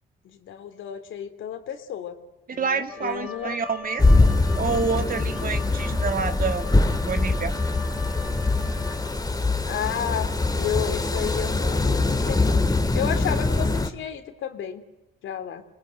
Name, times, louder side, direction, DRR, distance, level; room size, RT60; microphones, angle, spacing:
voice 1, 0.2-2.2 2.5-3.6 9.6-12.7 12.9-14.8 15.2-15.6, left 9 dB, 80° left, 8 dB, 3.1 m, -32 dB
voice 2, 2.6-6.7 7.0-7.5, right 5 dB, 45° right, 8 dB, 2.4 m, -28 dB
Wind instrument woodwind instrument, 2.9-9.4, left 3 dB, 5° right, 3.7 m, -40 dB
sound 1, 4.0-13.9, left 2 dB, 20° left, 2.3 m, -23 dB
26.5 x 21.0 x 9.2 m, 0.93 s
cardioid pair, 90°, 20 cm